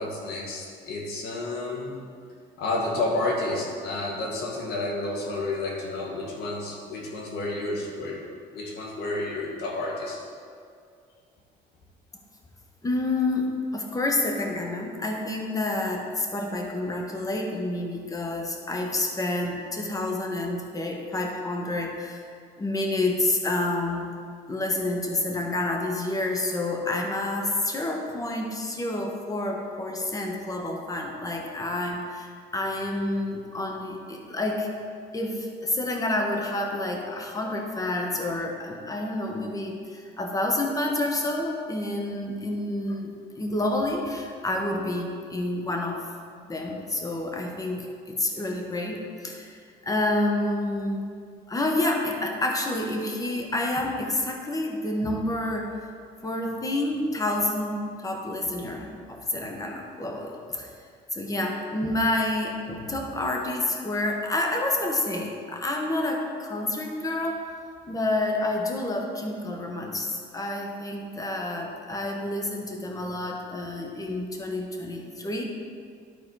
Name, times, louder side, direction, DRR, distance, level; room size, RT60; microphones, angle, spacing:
voice 1, 0.0-2.0 2.6-8.2 8.5-10.2, left 2 dB, 75° left, -1 dB, 1.9 m, -30 dB
voice 2, 12.8-22.3 22.6-24.1 24.5-34.7 35.1-43.1 43.4-46.0 46.5-51.1 51.5-55.7 56.2-60.7 61.1-67.4 67.9-75.4, left 2 dB, 20° left, 1 dB, 1.2 m, -29 dB
12.0 x 4.2 x 4.7 m, 2.2 s
cardioid pair, 110°, 17 cm